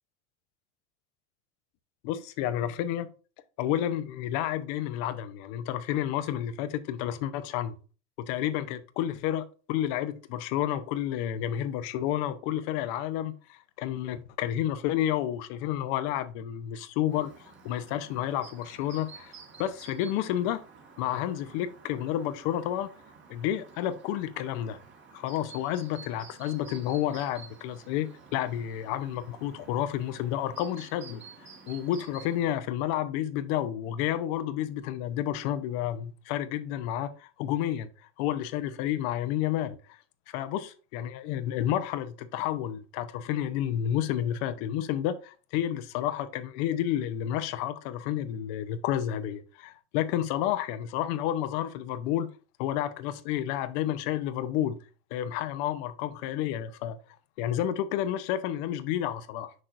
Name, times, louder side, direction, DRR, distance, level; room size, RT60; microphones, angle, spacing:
voice 1, 2.0-3.1 3.6-7.7 8.2-19.3 19.6-20.6 21.0-22.9 23.3-24.8 25.1-31.2 31.7-37.9 38.2-40.0 40.3-52.3 52.6-54.8 55.1-57.0 57.4-59.5, left 11 dB, 65° left, 0.9 m, -30 dB
Chirp tweet, 17.1-32.6, right 5 dB, 30° right, 1.7 m, -51 dB
6.3 x 6.1 x 2.6 m
supercardioid pair, 105°, 36 cm